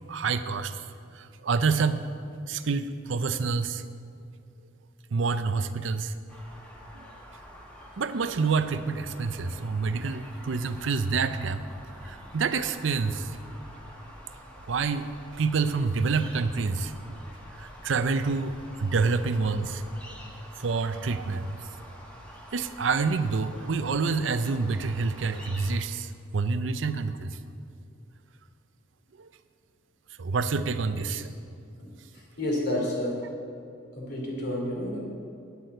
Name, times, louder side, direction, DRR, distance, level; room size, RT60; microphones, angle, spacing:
voice 1, 0.1-0.8 1.1-2.1 2.5-3.8 5.1-6.1 6.9-7.1 8.0-11.6 12.0-13.3 14.7-17.2 17.6-20.1 20.6-21.6 22.5-27.4 29.2-29.3 30.2-31.3, right 4 dB, 75° right, 11 dB, 0.5 m, -28 dB
sound 1, 6.3-25.8, equal, 5° left, 1.6 m, -47 dB
voice 2, 32.1-33.3 33.9-35.0, left 1 dB, 60° left, -2 dB, 3.0 m, -30 dB
9.6 x 8.0 x 7.8 m, 2.5 s
head